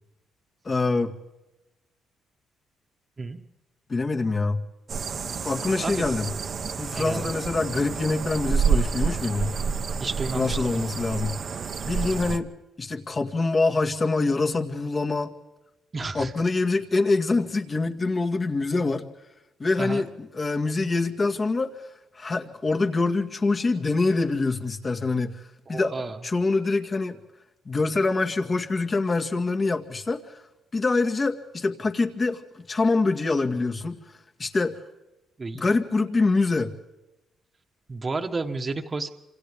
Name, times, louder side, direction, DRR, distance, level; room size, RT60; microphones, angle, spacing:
voice 1, 0.7-1.1 3.9-4.6 5.4-6.3 6.8-9.5 10.3-11.4 11.8-12.5 12.8-15.3 16.1-19.0 19.6-21.7 22.2-25.4 25.7-25.9 26.2-27.2 27.7-30.4 30.7-34.0 34.4-34.8 35.5-36.7, left 3 dB, 35° left, 5 dB, 2.1 m, -25 dB
sound 1, 4.9-12.4, right 6 dB, 50° right, 1.2 m, -29 dB
voice 2, 6.9-7.3 10.0-10.8 15.9-16.3 19.8-20.1 25.7-26.2 35.4-35.6 37.9-39.1, right 3 dB, 30° right, 4 dB, 1.5 m, -31 dB
28.0 x 26.5 x 3.7 m, 1.0 s
cardioid pair, 85°, 0 cm